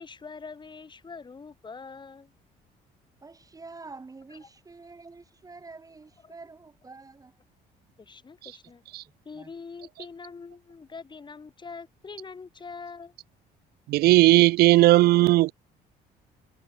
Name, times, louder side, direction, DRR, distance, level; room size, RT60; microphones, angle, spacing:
voice 1, 0.0-2.3 4.3-4.4 6.2-6.3 8.0-8.8 9.2-13.1, left 4 dB, 25° left, 7.8 m, -43 dB
voice 2, 3.2-7.3 9.1-9.5, right 3 dB, 20° right, 2.5 m, -47 dB
voice 3, 13.9-15.5, right 17 dB, 70° right, 0.4 m, -17 dB
cardioid pair, 110°, 17 cm